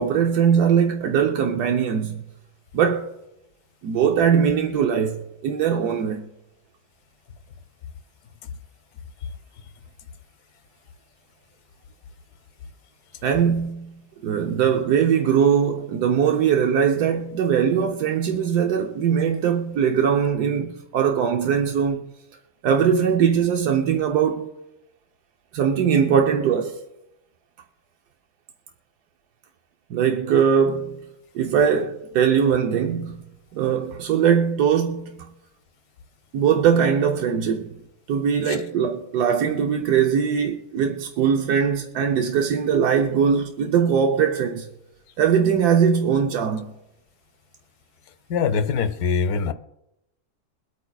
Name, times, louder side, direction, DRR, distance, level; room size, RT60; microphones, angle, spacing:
voice 1, 0.0-2.2 2.7-3.1 3.8-6.3 13.2-22.1 22.6-24.5 25.5-26.8 29.9-31.0 31.3-33.2 33.5-35.3 36.3-37.7 38.1-44.7 45.2-46.7, right 7 dB, 90° right, 1.3 m, -21 dB
voice 2, 48.3-49.5, left 6 dB, 75° left, 1.2 m, -23 dB
23.0 x 8.5 x 2.3 m
omnidirectional pair, 1.6 m